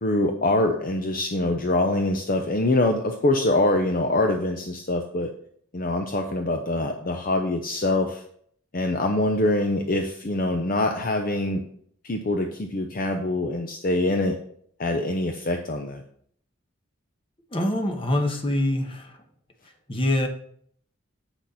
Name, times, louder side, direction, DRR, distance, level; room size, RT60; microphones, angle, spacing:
voice 1, 0.0-5.3 5.7-8.2 8.7-11.7 12.0-14.4 14.8-16.0, left 2 dB, 45° left, 4 dB, 0.6 m, -24 dB
voice 2, 17.5-19.2 19.9-20.3, left 1 dB, 25° left, 5 dB, 1.0 m, -25 dB
8.0 x 6.3 x 4.1 m, 0.62 s
head